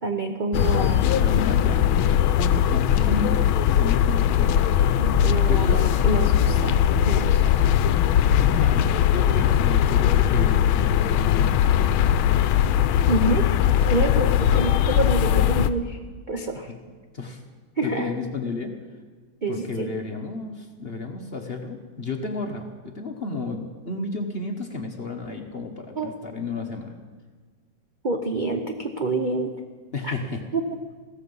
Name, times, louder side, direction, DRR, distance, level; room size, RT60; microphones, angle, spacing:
voice 1, 0.0-1.1 5.0-7.4 13.1-13.5 13.9-16.0 16.3-16.7 17.8-18.1 19.4-19.9 26.0-26.1 28.0-29.5 30.0-30.1 30.5-30.6, right 2 dB, 70° right, 4 dB, 0.4 m, -27 dB
sound 1, 0.5-15.7, left 10 dB, 80° left, 1.4 m, -20 dB
voice 2, 1.1-4.7 5.5-6.1 8.2-12.2 14.2-14.4 17.1-17.4 17.8-18.7 19.5-27.0 29.9-30.4, left 3 dB, 40° left, 4 dB, 0.9 m, -32 dB
15.5 x 14.0 x 5.5 m, 1.5 s
omnidirectional pair, 2.3 m